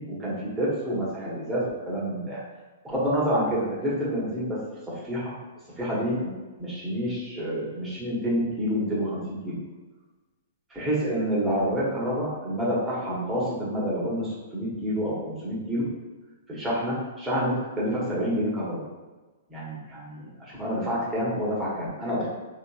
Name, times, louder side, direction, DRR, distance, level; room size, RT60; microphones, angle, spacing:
voice 1, 0.0-2.4 2.8-4.6 5.0-5.3 5.8-6.3 6.6-9.5 10.7-15.8 16.5-18.8 19.5-22.3, equal, 10° right, -8 dB, 1.3 m, -28 dB
3.5 x 3.0 x 2.3 m, 1.3 s
figure-of-eight pair, 110°, 0 cm